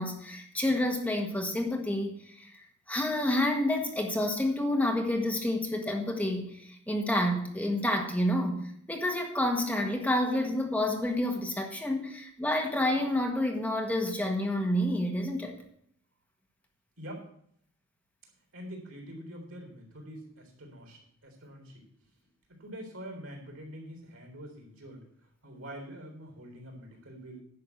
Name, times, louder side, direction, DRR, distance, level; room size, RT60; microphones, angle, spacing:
voice 1, 0.0-2.5 2.9-15.5, left 1 dB, 5° left, 2 dB, 1.5 m, -29 dB
voice 2, 17.0-17.3 18.5-21.9 22.5-25.0 25.4-27.4, equal, 90° right, 2 dB, 3.9 m, -45 dB
10.5 x 6.0 x 8.2 m, 0.67 s
head